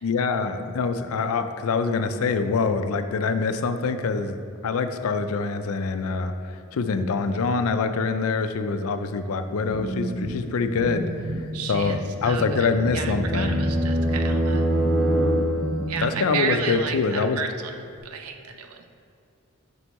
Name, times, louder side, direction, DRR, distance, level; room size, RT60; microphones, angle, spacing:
voice 1, 0.0-4.4 4.6-6.3 6.7-13.6 16.0-17.4, left 4 dB, 80° left, 9 dB, 0.4 m, -25 dB
sound 1, 9.4-16.2, equal, 5° right, 1.5 m, -34 dB
voice 2, 11.5-12.0 12.2-12.7 12.9-14.7 15.9-18.8, right 6 dB, 90° right, 6 dB, 0.6 m, -32 dB
sound 2, 12.1-16.0, right 1 dB, 60° right, 1.2 m, -24 dB
7.9 x 5.3 x 3.0 m, 2.5 s
head